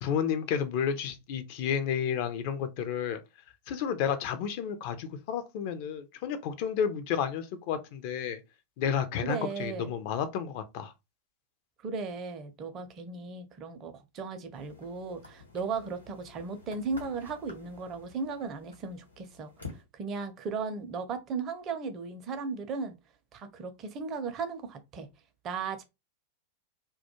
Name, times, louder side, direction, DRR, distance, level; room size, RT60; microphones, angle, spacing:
voice 1, 0.0-3.2 3.7-8.4 8.8-10.9, left 8 dB, 45° left, 0.4 m, -31 dB
voice 2, 9.2-9.9 11.8-19.5 19.9-23.0 23.3-25.1 25.4-25.8, right 4 dB, 30° right, 0.5 m, -36 dB
sound 1, 14.5-19.8, left 4 dB, 85° left, 0.9 m, -50 dB
2.2 x 2.2 x 2.8 m
figure-of-eight pair, 90°, 0 cm